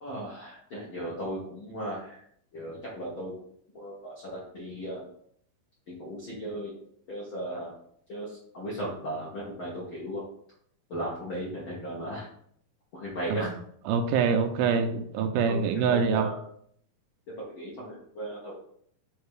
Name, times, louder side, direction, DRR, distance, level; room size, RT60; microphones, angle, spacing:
voice 1, 0.0-2.2 2.5-3.3 3.7-5.1 5.9-6.7 7.1-7.7 8.1-10.2 10.9-12.3 12.9-13.5 15.5-16.4 17.4-18.5, right 1 dB, 65° left, -6 dB, 1.2 m, -36 dB
voice 2, 13.9-16.3, right 6 dB, 80° right, 6 dB, 2.4 m, -25 dB
8.2 x 2.8 x 4.8 m, 0.64 s
omnidirectional pair, 4.4 m